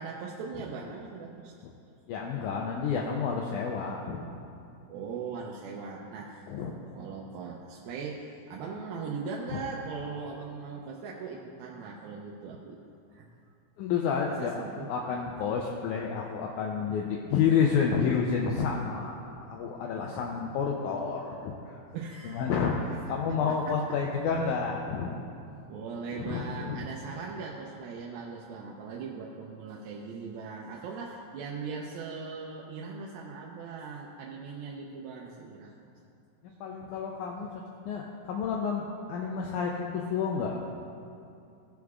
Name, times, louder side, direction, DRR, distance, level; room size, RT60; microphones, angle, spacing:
voice 1, 0.0-1.5 4.9-6.5 7.0-12.8 13.1-13.3 14.2-14.9 19.9-20.2 21.9-22.5 22.9-23.2 23.5-23.8 25.5-35.9, right 5 dB, 90° right, -2 dB, 2.5 m, -40 dB
voice 2, 2.1-4.3 6.5-6.7 9.5-9.6 13.8-21.8 22.2-25.2 26.1-26.9 36.6-40.6, left 6 dB, 85° left, -1 dB, 1.7 m, -30 dB
17.5 x 6.3 x 2.4 m, 2.6 s
omnidirectional pair, 4.1 m